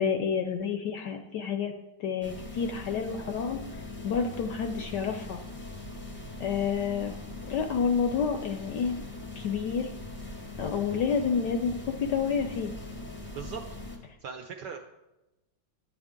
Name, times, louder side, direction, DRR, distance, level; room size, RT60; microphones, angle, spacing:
voice 1, 0.0-1.7 2.0-5.4 6.4-7.2 7.4-9.0 9.4-9.9 10.6-12.7, left 6 dB, 70° left, 6 dB, 1.0 m, -29 dB
sound 1, 2.2-14.0, left 2 dB, 15° left, 0.4 m, -41 dB
voice 2, 13.3-13.6 13.9-14.8, right 6 dB, 75° right, 5 dB, 1.0 m, -40 dB
11.0 x 8.8 x 3.7 m, 1.0 s
omnidirectional pair, 2.4 m